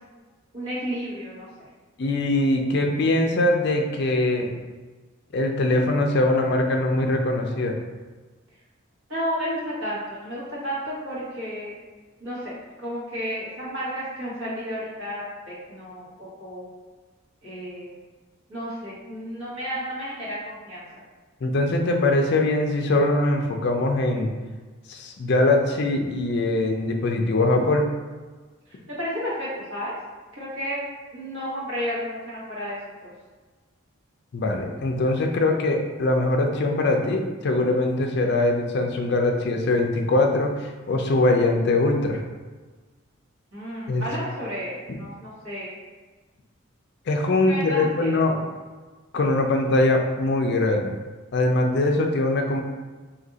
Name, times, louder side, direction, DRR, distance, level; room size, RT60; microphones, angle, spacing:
voice 1, 0.5-1.5 9.1-11.7 12.2-12.5 12.8-16.7 17.4-18.0 18.5-20.8 28.9-29.9 30.3-30.8 31.1-33.1 43.5-45.7 47.4-48.2, equal, 70° right, -8 dB, 1.4 m, -32 dB
voice 2, 2.0-4.5 5.3-7.8 21.4-24.3 24.9-27.8 34.3-42.2 43.9-44.1 44.9-45.0 47.1-48.4 49.1-50.9 51.3-52.6, left 2 dB, 50° left, 3 dB, 0.4 m, -22 dB
2.7 x 2.5 x 3.9 m, 1.3 s
head